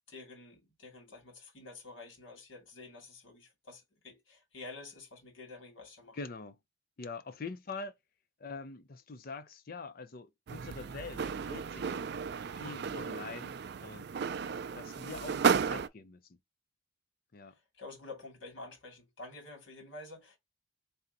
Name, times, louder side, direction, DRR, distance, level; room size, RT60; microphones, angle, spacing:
voice 1, 0.1-6.2 17.5-20.4, left 3 dB, 75° left, 2.3 m, -49 dB
voice 2, 6.1-6.6 7.0-8.0 8.4-12.0 12.6-14.1 14.7-16.2 17.3-17.5, left 4 dB, 45° left, 0.5 m, -44 dB
sound 1, 10.5-15.9, right 6 dB, 55° right, 0.4 m, -33 dB
3.5 x 2.7 x 3.9 m
head